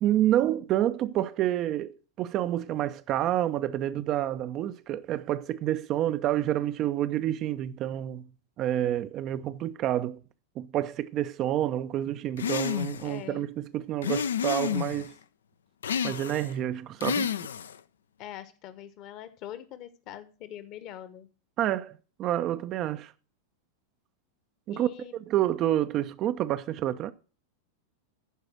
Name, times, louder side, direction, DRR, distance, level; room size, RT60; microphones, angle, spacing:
voice 1, 0.0-8.2 8.6-10.2 10.6-15.1 16.0-17.3 21.6-23.1 24.7-27.1, right 12 dB, 35° right, 0.4 m, -28 dB
sound 1, 12.4-13.1 14.0-15.1 15.8-16.5 17.0-17.8, left 7 dB, 65° left, 0.4 m, -30 dB
voice 2, 13.0-13.5 18.2-21.3 24.7-25.1, left 11 dB, 40° left, 1.0 m, -43 dB
11.0 x 4.8 x 6.0 m
figure-of-eight pair, 90°, 0 cm